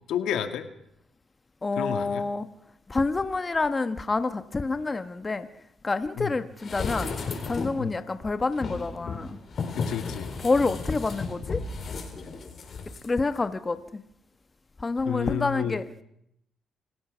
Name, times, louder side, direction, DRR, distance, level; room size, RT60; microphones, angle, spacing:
voice 1, 0.1-0.6 1.7-2.2 6.2-6.4 7.8-8.0 9.8-10.3 15.0-15.8, left 10 dB, 80° left, 1.8 m, -31 dB
voice 2, 1.6-2.5 2.9-5.5 5.8-7.1 7.5-9.3 10.4-11.6 13.0-13.8 14.8-15.8, left 3 dB, 25° left, 1.2 m, -27 dB
sound 1, 6.6-7.9 8.5-13.1 13.4-13.5, left 4 dB, 50° left, 4.5 m, -34 dB
27.0 x 15.5 x 6.2 m
cardioid pair, 90°, 0 cm